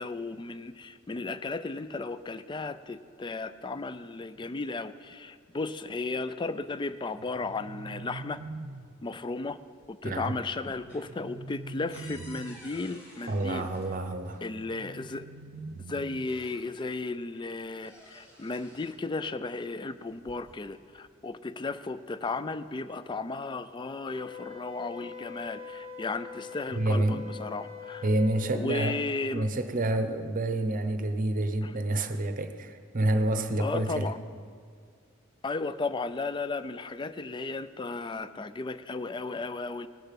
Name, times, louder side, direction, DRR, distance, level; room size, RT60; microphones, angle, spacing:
voice 1, 0.0-8.4 9.0-9.6 9.9-13.7 14.4-15.3 15.9-28.1 28.5-29.5 31.6-31.7 33.6-34.2 35.4-39.9, left 3 dB, 25° left, 14 dB, 0.4 m, -35 dB
sound 1, 7.2-9.2 10.9-12.8 14.6-16.5, right 2 dB, 85° right, 0.5 m, -43 dB
sound 2, 9.6-10.1 10.4-14.5 15.5-15.6 16.1-17.0 17.4-19.0 19.9-20.7, equal, 55° left, 3.3 m, -53 dB
voice 2, 10.0-10.4 13.3-14.4 26.7-27.2 28.0-29.0 29.3-34.1, right 1 dB, 40° right, 8 dB, 0.7 m, -28 dB
Wind instrument woodwind instrument, 24.1-28.7, left 6 dB, 75° left, 1.6 m, -43 dB
19.0 x 6.8 x 5.8 m, 2.1 s
head